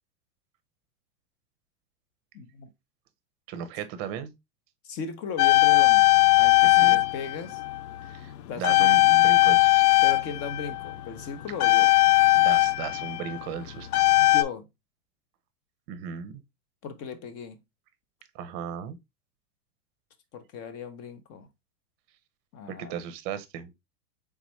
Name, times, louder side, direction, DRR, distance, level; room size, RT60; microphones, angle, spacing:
voice 1, 2.3-2.7 4.8-6.1 6.4-7.6 8.5-8.9 10.0-11.9 14.1-14.7 16.8-17.6 20.3-21.5 22.5-23.0, left 6 dB, 30° left, 0.7 m, -37 dB
voice 2, 3.5-4.3 6.6-7.0 8.1-8.3 8.6-10.0 12.3-14.0 15.9-16.4 18.3-19.0 22.7-23.7, right 8 dB, 40° right, 0.7 m, -36 dB
sound 1, 5.4-8.3 8.6-14.4, left 18 dB, 75° left, 0.6 m, -20 dB
4.0 x 3.6 x 3.0 m
supercardioid pair, 140°, 48 cm